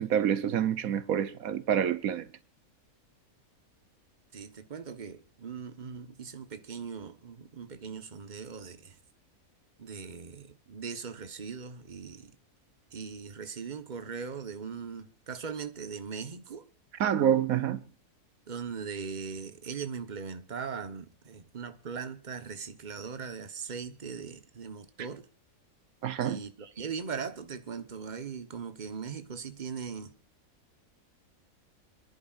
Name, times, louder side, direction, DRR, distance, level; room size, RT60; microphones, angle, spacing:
voice 1, 0.0-2.3 17.0-17.8 26.0-26.4, right 9 dB, 80° right, 1.3 m, -27 dB
voice 2, 4.3-8.9 9.8-12.4 12.9-16.7 18.5-25.3 26.2-30.1, right 6 dB, 35° right, 1.3 m, -40 dB
27.5 x 11.0 x 2.5 m
omnidirectional pair, 1.5 m